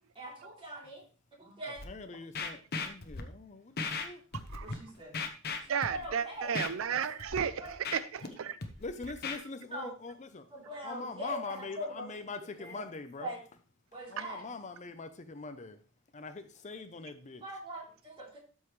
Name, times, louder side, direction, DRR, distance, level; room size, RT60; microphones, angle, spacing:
voice 1, 0.1-1.0 1.3-1.8 4.6-5.1 5.9-6.6 7.5-7.7 8.2-8.4 9.7-9.9 10.5-12.2 12.6-12.9 13.2-13.4 13.9-14.5 17.4-18.4, right 1 dB, 30° right, -3 dB, 3.3 m, -42 dB
Scratching (performance technique), 1.8-1.9 2.3-3.2 3.8-4.1 4.3-4.7 5.1-6.1 6.5-6.7 7.2-7.4 7.7-8.3 8.6-9.4, left 4 dB, 50° left, 1.0 m, -36 dB
voice 2, 1.8-4.2 6.9-7.0 8.8-10.5 10.9-13.3 14.1-15.8 16.1-17.4, left 3 dB, 35° left, 10 dB, 0.6 m, -43 dB
voice 3, 5.7-8.6, right 7 dB, 90° right, 15 dB, 0.5 m, -33 dB
12.5 x 5.5 x 3.2 m, 0.37 s
head